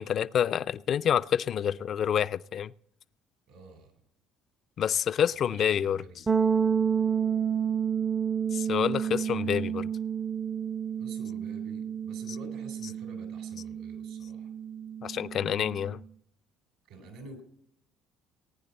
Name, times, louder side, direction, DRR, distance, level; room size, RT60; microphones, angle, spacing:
voice 1, 0.0-2.7 4.8-6.0 8.5-9.9 15.0-16.0, left 9 dB, 55° left, 0.4 m, -28 dB
voice 2, 3.5-3.9 5.3-6.3 11.0-14.5 16.9-17.4, right 3 dB, 80° right, 3.5 m, -48 dB
sound 1, 6.3-16.0, right 7 dB, 25° right, 0.4 m, -30 dB
19.0 x 9.4 x 4.1 m
supercardioid pair, 75°, 0 cm